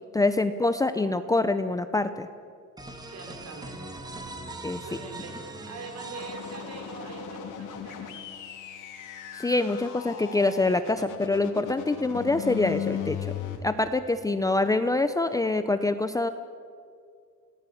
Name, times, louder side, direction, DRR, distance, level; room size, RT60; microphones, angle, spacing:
voice 1, 0.1-2.3 4.6-4.9 9.3-13.3 13.6-16.3, left 2 dB, 10° left, 10 dB, 0.7 m, -25 dB
sound 1, 2.8-7.4, right 2 dB, 15° right, 2.0 m, -41 dB
voice 2, 3.1-3.8 4.8-8.4, right 4 dB, 55° right, 3 dB, 5.0 m, -43 dB
sound 2, 6.2-13.6, left 9 dB, 80° left, 3.2 m, -37 dB
28.5 x 18.5 x 8.6 m, 2.2 s
cardioid pair, 175°, 31 cm